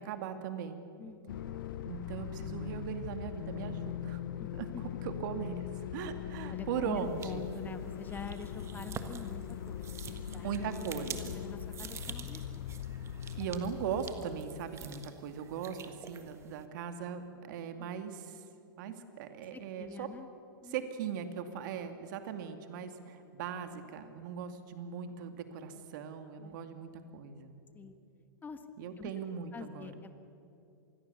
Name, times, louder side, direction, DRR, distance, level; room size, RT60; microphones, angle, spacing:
voice 1, 0.0-0.8 1.8-4.2 4.6-4.7 5.0-5.7 5.9-7.4 10.4-11.4 13.4-18.4 18.8-20.1 20.7-27.5 28.8-29.9, right 7 dB, 60° right, 7 dB, 2.5 m, -39 dB
voice 2, 1.0-1.5 4.4-4.8 6.5-10.7 10.9-12.7 13.4-13.5 14.8-14.9 17.8-17.9 19.5-20.3 20.6-20.8 24.5-24.7 25.8-25.9 26.4-26.6 27.7-28.0 28.4-28.7 29.0-29.1 29.5-30.1, left 4 dB, 15° left, 9 dB, 1.7 m, -46 dB
sound 1, 1.3-14.7, left 10 dB, 70° left, 0.9 m, -41 dB
sound 2, 7.0-16.7, right 7 dB, 25° right, 1.6 m, -48 dB
26.5 x 20.5 x 7.0 m, 2.7 s
hypercardioid pair, 120°, 11 cm